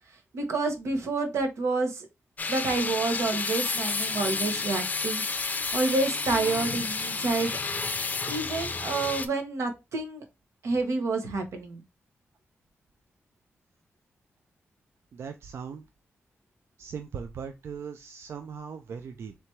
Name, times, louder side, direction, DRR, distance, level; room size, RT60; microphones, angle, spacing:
voice 1, 0.3-2.1 2.5-5.2 5.7-7.6 8.3-10.2 10.6-11.8, right 3 dB, 90° right, 4 dB, 1.1 m, -28 dB
sound 1, 2.4-9.3, left 4 dB, 35° left, 0.5 m, -31 dB
voice 2, 15.1-15.8 16.8-19.4, right 6 dB, 65° right, 7 dB, 0.4 m, -39 dB
3.3 x 3.0 x 4.4 m, 0.24 s
wide cardioid pair, 145°, 5 cm